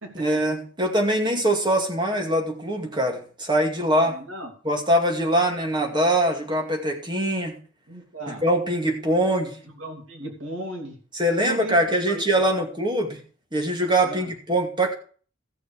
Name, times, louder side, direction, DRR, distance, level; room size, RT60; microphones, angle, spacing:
voice 1, 0.1-4.2 4.6-7.6 8.3-9.6 11.1-13.2 13.5-14.9, right 1 dB, 25° right, 2 dB, 2.3 m, -23 dB
voice 2, 4.1-4.5 7.9-8.4 9.8-11.0 11.4-12.5 14.0-14.3, right 2 dB, 85° right, 2 dB, 2.9 m, -36 dB
15.0 x 6.6 x 4.9 m, 0.41 s
head